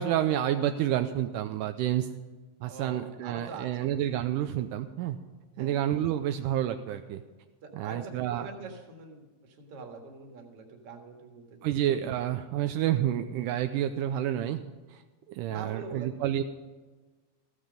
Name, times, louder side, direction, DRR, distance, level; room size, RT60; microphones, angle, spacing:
voice 1, 0.0-2.1 2.6-5.2 5.6-7.2 7.7-8.5 11.6-14.6 14.9-15.0 15.3-16.4, right 11 dB, 85° right, 7 dB, 1.9 m, -29 dB
voice 2, 2.6-4.0 5.5-5.7 7.6-11.6 15.5-16.2, right 4 dB, 50° right, 3 dB, 2.3 m, -44 dB
15.0 x 11.5 x 5.3 m, 1.3 s
omnidirectional pair, 4.3 m